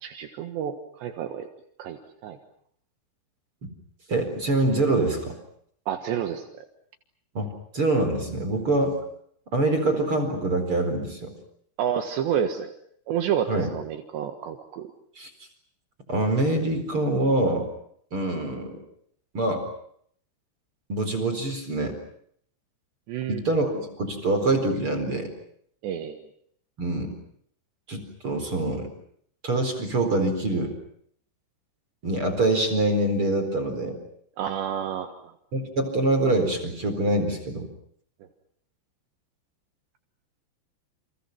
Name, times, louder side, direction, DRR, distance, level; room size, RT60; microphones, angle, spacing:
voice 1, 0.0-1.5 1.8-2.4 5.9-6.4 11.8-12.7 13.1-14.9 23.1-23.4 25.8-26.3 34.4-35.3, right 9 dB, 70° right, 7 dB, 3.6 m, -29 dB
voice 2, 4.1-5.4 7.3-9.0 9.5-11.3 13.5-13.7 15.2-15.3 16.1-17.7 18.1-18.8 19.3-19.6 20.9-22.0 23.3-25.3 26.8-27.1 27.9-28.9 29.4-30.8 32.0-34.0 35.5-37.7, right 2 dB, 30° right, 7 dB, 4.8 m, -25 dB
30.0 x 29.5 x 6.0 m, 0.66 s
omnidirectional pair, 5.4 m